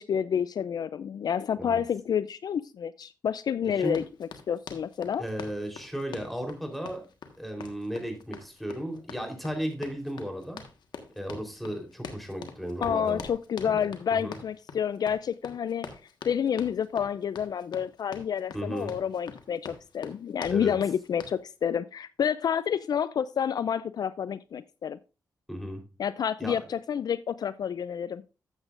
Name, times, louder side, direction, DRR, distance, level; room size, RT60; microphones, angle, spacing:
voice 1, 0.0-5.2 12.8-15.9 16.2-25.0 26.0-28.2, left 8 dB, 60° left, 16 dB, 0.4 m, -29 dB
Run, 3.8-21.4, left 6 dB, 80° left, 1.4 m, -45 dB
voice 2, 5.2-7.1 7.4-10.6 11.2-13.2 13.6-14.4 18.5-18.9 20.5-20.7 25.5-25.8 26.4-26.6, equal, ahead, 3 dB, 3.7 m, -35 dB
12.5 x 8.0 x 2.5 m, 0.31 s
cardioid pair, 65°, 8 cm